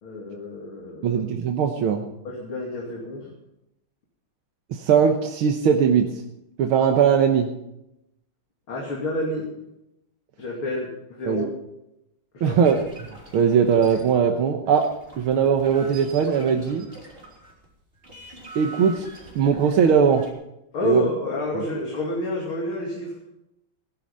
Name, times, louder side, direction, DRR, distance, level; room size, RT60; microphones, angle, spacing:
voice 1, 0.0-1.2 2.3-3.3 8.7-9.5 10.4-11.5 12.3-12.6 20.7-23.1, left 2 dB, 75° left, -2 dB, 3.5 m, -29 dB
voice 2, 1.0-2.0 4.7-6.1 6.6-7.5 11.3-11.4 12.4-12.8 13.3-14.9 15.2-16.9 18.6-20.2 20.8-21.1 21.5-21.6, right 7 dB, 85° right, 3 dB, 2.0 m, -20 dB
sound 1, 12.5-17.7 17.9-20.3, right 2 dB, 25° right, 4.5 m, -44 dB
18.0 x 12.0 x 5.5 m, 0.85 s
omnidirectional pair, 2.3 m